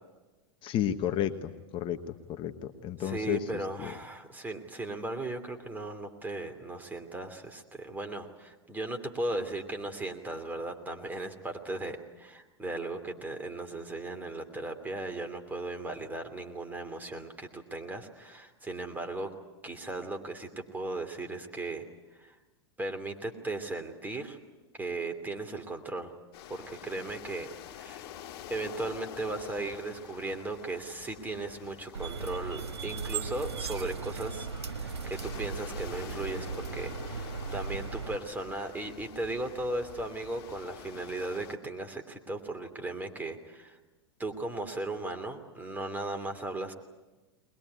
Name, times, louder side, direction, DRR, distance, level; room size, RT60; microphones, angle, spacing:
voice 1, 0.6-3.4 3.8-3.9, left 11 dB, 40° left, 8 dB, 1.2 m, -32 dB
voice 2, 3.0-19.3 19.6-21.8 22.1-22.4 22.8-24.4 24.8-26.1 26.5-28.0 28.5-36.5 36.7-43.8 44.2-46.7, right 2 dB, 15° right, 5 dB, 2.9 m, -37 dB
sound 1, 26.3-41.6, left 11 dB, 60° left, 2.2 m, -47 dB
sound 2, 31.9-38.2, right 5 dB, 90° right, 1.5 m, -37 dB
21.5 x 21.0 x 9.7 m, 1.2 s
hypercardioid pair, 100°, 14 cm